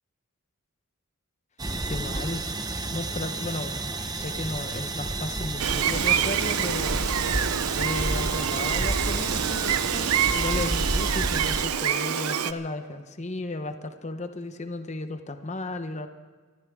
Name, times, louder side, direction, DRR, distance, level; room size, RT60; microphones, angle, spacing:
sound 1, 1.6-11.6, right 2 dB, 20° right, 0.7 m, -30 dB
voice 1, 1.9-2.4 2.9-3.8 4.1-7.0 7.7-16.1, left 2 dB, 30° left, 8 dB, 0.9 m, -34 dB
Gull seagull, 5.6-12.5, right 9 dB, 85° right, 0.6 m, -26 dB
26.0 x 13.5 x 3.6 m, 1.5 s
head